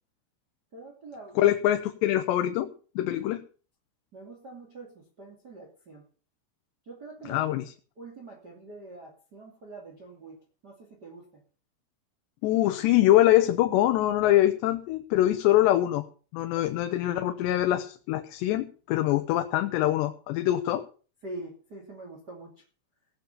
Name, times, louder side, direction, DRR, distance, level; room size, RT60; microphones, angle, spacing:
voice 1, 0.7-1.5 4.1-6.0 6.9-7.4 8.0-10.3 10.6-11.3 16.6-16.7 21.2-22.6, right 2 dB, 30° right, 1 dB, 2.7 m, -44 dB
voice 2, 1.4-3.4 7.3-7.6 12.4-16.1 16.3-20.8, left 14 dB, 90° left, 7 dB, 3.1 m, -24 dB
18.0 x 7.1 x 7.0 m, 0.39 s
omnidirectional pair, 4.8 m